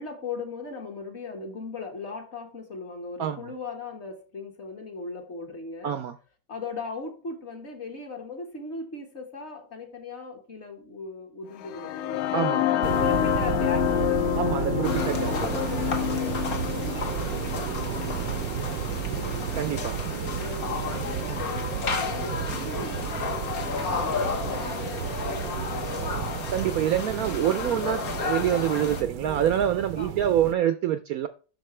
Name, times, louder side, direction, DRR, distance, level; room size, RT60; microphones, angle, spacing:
voice 1, 0.0-6.0 6.5-12.3 12.7-19.6 20.1-26.3 27.7-28.1 29.1-29.4 30.0-30.3, left 4 dB, 40° left, 1.6 m, -39 dB
voice 2, 3.2-3.5 5.8-6.2 12.3-12.8 14.4-15.5 19.5-20.0 26.5-31.3, right 10 dB, 70° right, 0.9 m, -26 dB
sound 1, 11.6-19.5, left 14 dB, 75° left, 1.1 m, -28 dB
sound 2, 12.8-30.5, right 10 dB, 90° right, 1.3 m, -33 dB
sound 3, 14.8-29.0, left 6 dB, 60° left, 1.5 m, -33 dB
11.5 x 4.2 x 3.2 m
omnidirectional pair, 1.9 m